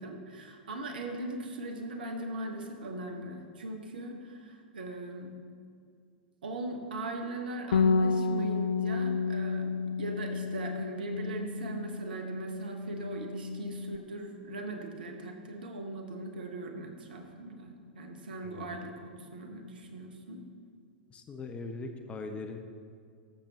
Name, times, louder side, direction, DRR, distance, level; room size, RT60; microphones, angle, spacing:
voice 1, 0.0-5.4 6.4-9.7 10.0-20.4, right 2 dB, 65° right, 4 dB, 1.0 m, -39 dB
Bass guitar, 7.7-14.0, left 4 dB, 60° left, 0.4 m, -31 dB
voice 2, 18.4-18.8 21.1-22.6, left 3 dB, 20° left, 6 dB, 0.6 m, -41 dB
13.5 x 6.8 x 2.9 m, 2.2 s
figure-of-eight pair, 95°, 5 cm